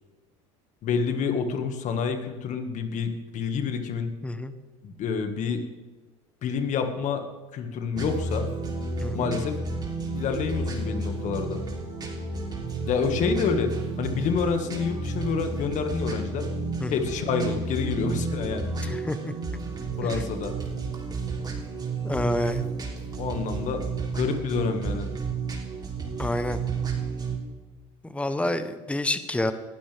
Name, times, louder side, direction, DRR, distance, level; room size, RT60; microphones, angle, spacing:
voice 1, 0.8-4.1 4.8-5.6 6.4-7.2 7.5-8.5 9.1-9.6 10.1-11.6 12.9-13.7 14.0-16.4 16.9-18.7 20.0-20.5 23.2-23.8 24.1-25.1, left 5 dB, 50° left, 6 dB, 1.9 m, -28 dB
voice 2, 4.2-4.5 9.0-9.3 16.8-17.1 18.8-19.3 20.0-20.1 22.0-22.7 26.2-26.6 28.0-29.5, left 1 dB, 10° left, 11 dB, 1.1 m, -28 dB
sound 1, 8.0-27.4, right 3 dB, 25° right, 3.5 m, -31 dB
20.0 x 12.0 x 3.6 m, 1.2 s
supercardioid pair, 90°, 16 cm